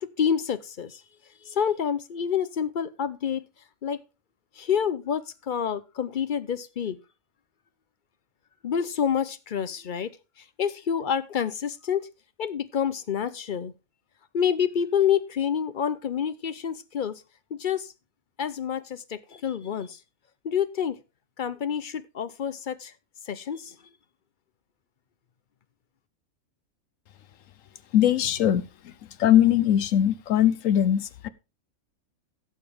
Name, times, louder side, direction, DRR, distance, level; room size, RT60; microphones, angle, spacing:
voice 1, 0.0-1.0 1.4-3.4 3.8-4.0 4.6-7.0 8.6-10.1 10.6-12.1 12.4-13.7 14.3-17.2 17.5-17.9 18.4-20.0 20.4-21.0 21.4-22.9 23.3-23.8, left 8 dB, 50° left, 0.6 m, -28 dB
voice 2, 27.9-28.9 29.2-31.3, left 11 dB, 70° left, 1.1 m, -21 dB
16.5 x 6.7 x 3.5 m
omnidirectional pair, 1.5 m